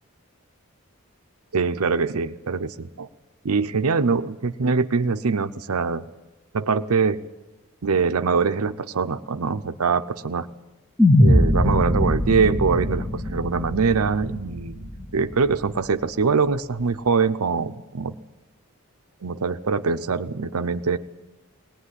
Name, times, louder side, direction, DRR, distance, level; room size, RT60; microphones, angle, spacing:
voice 1, 1.5-3.1 3.4-6.1 6.5-7.2 7.8-10.5 11.2-18.1 19.2-21.0, right 5 dB, 90° right, 8 dB, 0.7 m, -23 dB
sound 1, 11.0-15.3, left 1 dB, 15° left, 1.3 m, -21 dB
19.5 x 18.5 x 9.9 m, 1.1 s
head